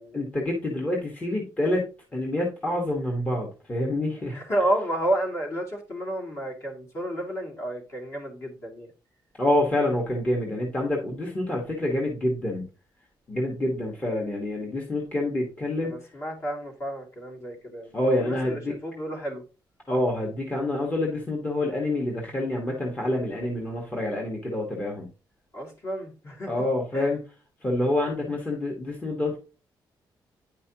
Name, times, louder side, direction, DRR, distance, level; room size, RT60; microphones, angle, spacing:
voice 1, 0.1-4.4 9.4-12.7 13.3-15.9 17.9-18.6 19.9-25.1 26.5-27.2 27.6-29.4, left 1 dB, 15° left, -1 dB, 1.4 m, -27 dB
voice 2, 4.3-8.9 15.8-19.4 25.5-26.6 26.9-27.1, right 1 dB, 35° left, 0 dB, 2.3 m, -31 dB
9.6 x 5.4 x 2.9 m, 0.34 s
cardioid pair, 160°, 8 cm